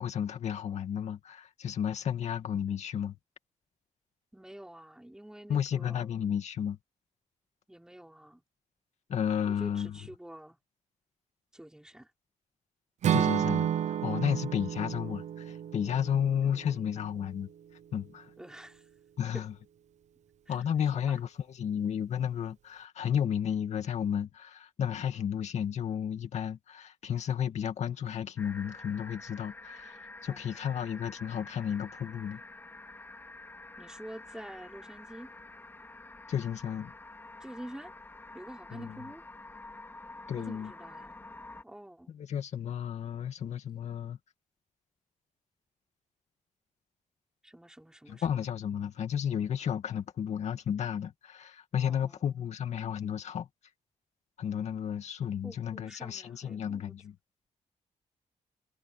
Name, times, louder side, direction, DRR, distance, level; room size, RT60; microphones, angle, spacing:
voice 1, 0.0-3.2 5.5-6.8 9.1-10.0 13.1-13.7 14.0-17.5 17.9-18.3 19.2-19.5 20.5-21.3 21.6-32.4 36.3-36.9 38.8-38.9 40.3-40.7 42.1-44.2 48.1-53.5 54.4-57.1, left 8 dB, 65° left, 2.3 m, -32 dB
voice 2, 4.3-6.1 7.7-8.4 9.4-10.6 11.5-12.1 16.4-16.8 18.4-18.9 19.3-19.4 20.5-21.2 30.3-30.4 33.8-35.3 37.4-37.9 38.3-39.2 40.4-41.2 41.6-42.1 47.4-48.4 51.9-52.4 55.4-56.9, right 1 dB, 5° right, 5.8 m, -48 dB
Acoustic guitar / Strum, 13.0-17.1, right 10 dB, 65° right, 0.9 m, -31 dB
sound 1, 28.4-41.6, left 2 dB, 15° left, 3.5 m, -48 dB
wide cardioid pair, 155°, 13 cm